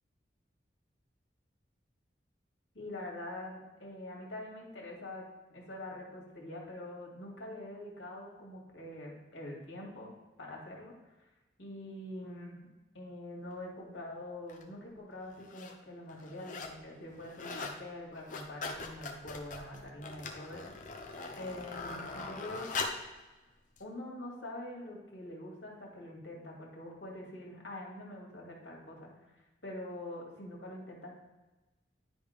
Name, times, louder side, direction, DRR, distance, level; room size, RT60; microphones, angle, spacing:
voice 1, 2.7-10.1 10.4-11.1 11.6-12.6 12.9-21.0 21.4-22.8 23.8-29.1 29.6-31.1, left 1 dB, 80° left, -2 dB, 2.3 m, -45 dB
sound 1, 14.5-14.6 15.3-15.8 16.1-16.8 17.1-17.8 18.1-23.1 23.8-23.9, left 3 dB, 45° left, 0.9 m, -41 dB
10.5 x 3.6 x 5.1 m, 1.1 s
head